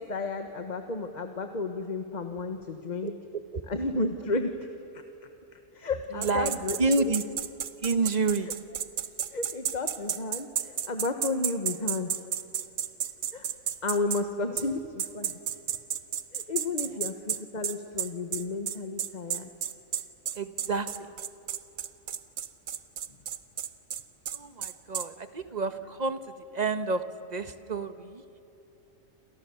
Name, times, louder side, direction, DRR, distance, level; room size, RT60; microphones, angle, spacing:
voice 1, 0.0-3.1 3.7-4.5 4.9-5.0 5.7-7.2 9.3-12.1 13.3-13.5 13.8-15.3 16.3-19.5, left 3 dB, 35° left, 6 dB, 1.4 m, -32 dB
voice 2, 3.0-3.6 6.1-6.5 6.8-7.2 7.8-8.5 20.3-21.1 24.3-27.0 27.3-28.2, right 3 dB, 35° right, 10 dB, 1.3 m, -29 dB
sound 1, 6.2-14.2 14.6-14.7 15.0-25.1, right 9 dB, 85° right, 1.3 m, -32 dB
29.0 x 28.0 x 7.0 m, 2.9 s
omnidirectional pair, 1.4 m